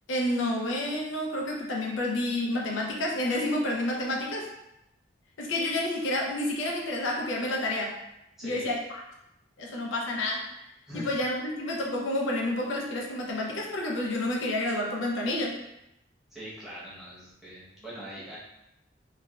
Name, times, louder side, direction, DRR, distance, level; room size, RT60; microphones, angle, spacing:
voice 1, 0.1-4.5 5.4-7.9 8.4-9.0 9.6-10.5 10.9-15.6, left 1 dB, 85° left, -1 dB, 0.6 m, -29 dB
voice 2, 8.4-8.7 10.9-11.1 16.3-18.4, equal, ahead, -10 dB, 0.9 m, -42 dB
3.2 x 2.2 x 2.3 m, 0.85 s
head